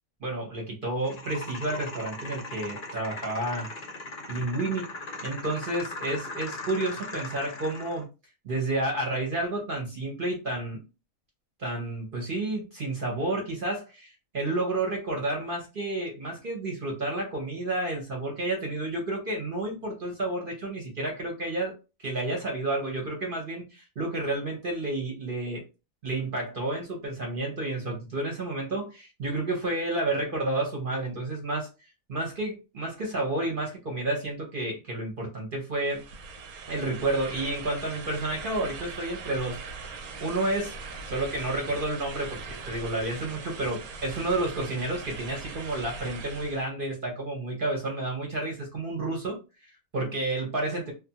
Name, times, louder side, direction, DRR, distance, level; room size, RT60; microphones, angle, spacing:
voice 1, 0.2-3.7 4.3-4.9 5.2-8.1 8.4-10.8 11.6-25.6 26.0-31.7 32.1-36.0 36.7-39.6 40.2-40.8 41.1-50.9, right 2 dB, 50° right, 0 dB, 0.7 m, -30 dB
sound 1, 1.0-8.0, left 2 dB, 50° left, 0.7 m, -39 dB
sound 2, 35.8-46.7, right 4 dB, 90° right, 1.0 m, -41 dB
2.5 x 2.2 x 2.7 m, 0.29 s
omnidirectional pair, 1.5 m